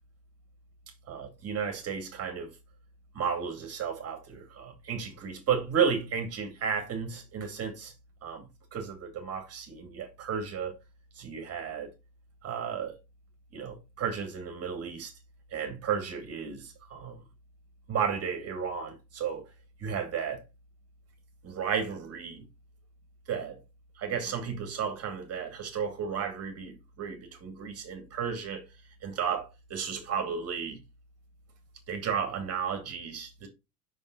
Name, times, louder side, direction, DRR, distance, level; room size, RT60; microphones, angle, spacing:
voice 1, 1.1-2.5 3.1-7.9 8.2-10.8 11.1-11.9 12.4-13.0 13.5-15.1 15.5-17.2 17.9-19.4 19.8-20.4 21.4-22.4 23.3-23.6 24.0-28.6 29.0-30.8 31.9-33.5, right 7 dB, 30° right, 2.5 m, -33 dB
6.1 x 5.3 x 3.9 m
figure-of-eight pair, 90°, 49 cm